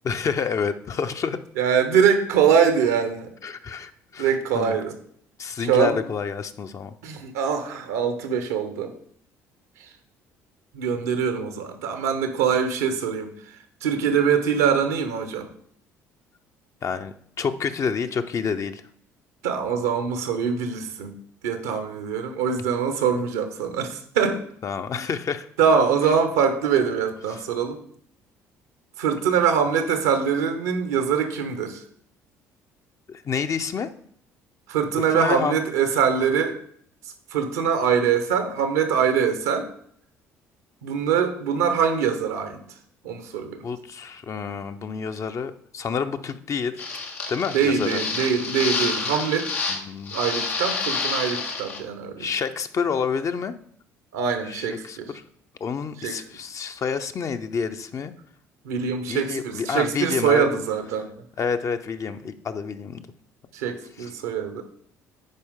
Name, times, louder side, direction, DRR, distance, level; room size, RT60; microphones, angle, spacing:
voice 1, 0.0-1.4 3.4-4.8 5.4-6.9 16.8-18.8 24.6-25.5 27.3-27.4 33.1-33.9 35.1-35.6 43.6-46.8 47.3-48.0 49.7-50.1 52.2-53.5 54.5-55.2 55.6-58.1 59.1-60.5 61.4-63.0, left 6 dB, 40° left, 8 dB, 0.7 m, -28 dB
voice 2, 1.6-3.3 4.2-5.0 5.6-6.0 7.0-8.9 10.7-13.3 13.8-15.5 19.4-21.2 21.4-24.4 25.6-27.8 29.0-31.8 34.7-36.6 37.3-39.7 40.8-42.6 43.0-43.6 47.5-49.5 50.1-52.3 54.1-55.1 56.0-56.2 58.6-61.1 63.5-64.6, right 7 dB, 80° right, 7 dB, 1.0 m, -23 dB
sound 1, 46.8-49.8 50.1-51.8, left 4 dB, 85° left, 1.1 m, -28 dB
10.5 x 4.6 x 3.7 m, 0.63 s
hypercardioid pair, 55°, 8 cm